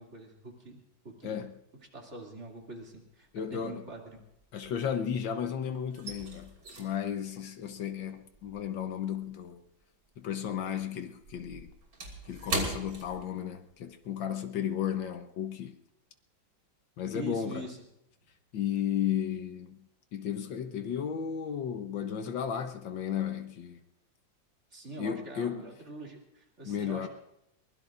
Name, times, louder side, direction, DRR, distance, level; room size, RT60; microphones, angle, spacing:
voice 1, 0.0-1.4 1.9-4.2 17.1-17.8 24.7-27.1, right 2 dB, 35° right, 2.9 m, -44 dB
voice 2, 1.2-1.5 3.3-3.8 4.5-9.6 10.2-11.7 12.3-15.8 17.0-17.7 18.5-23.8 25.0-25.6 26.7-27.1, left 9 dB, 80° left, 1.7 m, -34 dB
sound 1, 2.5-3.0 3.3-5.3 5.6-10.3 10.5-13.9 14.2-14.4 14.8-15.1, right 2 dB, 60° right, 3.4 m, -40 dB
22.5 x 21.0 x 2.5 m
omnidirectional pair, 2.0 m